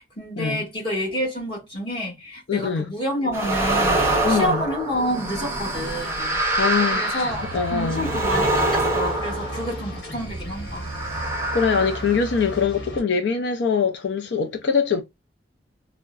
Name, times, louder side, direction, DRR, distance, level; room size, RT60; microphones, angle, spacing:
voice 1, 0.0-6.4 6.9-10.9, equal, 25° left, 1.4 m, -29 dB
voice 2, 2.5-2.9 4.2-4.6 6.6-8.1 11.5-15.0, left 5 dB, 75° left, 0.4 m, -23 dB
sound 1, 3.3-10.1 10.7-12.6, right 2 dB, 15° right, 0.7 m, -25 dB
sound 2, 7.1-13.0, right 1 dB, 60° left, 1.5 m, -35 dB
3.6 x 2.1 x 2.4 m
head